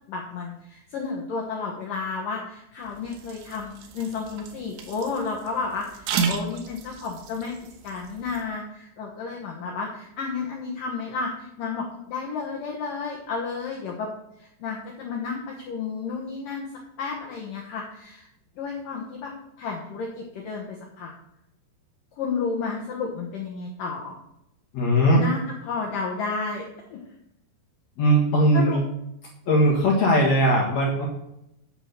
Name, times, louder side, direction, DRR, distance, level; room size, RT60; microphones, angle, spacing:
voice 1, 0.1-7.5 7.8-14.1 14.4-16.7 17.0-18.3 18.6-19.3 19.6-21.1 22.2-24.2 25.1-25.4 25.6-27.0 28.5-28.8, left 4 dB, 80° left, -1 dB, 1.9 m, -32 dB
sound 1, 2.8-8.4, right 6 dB, 70° right, 3.0 m, -34 dB
voice 2, 24.7-25.2 28.0-28.8 29.5-31.1, equal, 60° left, -1 dB, 1.8 m, -19 dB
9.4 x 6.2 x 6.6 m, 0.81 s
omnidirectional pair, 5.8 m